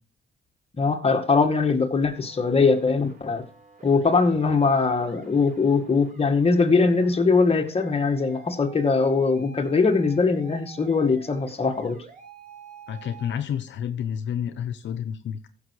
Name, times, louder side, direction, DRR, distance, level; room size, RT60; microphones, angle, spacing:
voice 1, 0.8-3.4 3.8-12.0, left 4 dB, 30° left, 2.0 m, -21 dB
sound 1, 2.0-13.4, right 4 dB, 40° right, 5.3 m, -48 dB
voice 2, 12.9-15.5, left 8 dB, 70° left, 0.9 m, -30 dB
14.5 x 6.9 x 4.9 m
cardioid pair, 90°, 20 cm